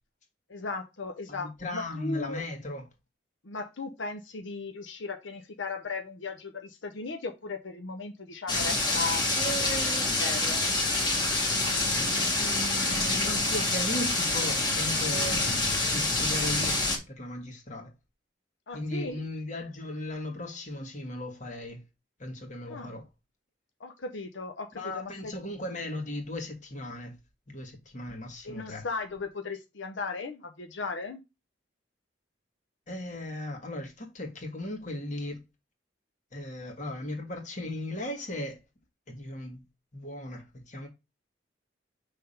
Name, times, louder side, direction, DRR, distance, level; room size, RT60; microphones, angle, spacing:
voice 1, 0.5-2.4 3.4-9.6 10.0-10.6 18.7-19.2 22.7-22.9 23.8-25.3 28.4-31.2, left 4 dB, 85° left, 0.8 m, -37 dB
voice 2, 1.3-2.8 9.3-10.2 12.3-15.5 15.9-16.8 17.1-17.9 18.7-21.8 22.2-23.1 24.7-27.1 27.5-28.9 32.9-35.4 36.3-38.6 39.1-39.6 39.9-40.9, left 1 dB, 40° left, 1.7 m, -37 dB
sound 1, 8.5-17.0, left 2 dB, 25° left, 1.6 m, -27 dB
5.7 x 3.6 x 5.5 m
head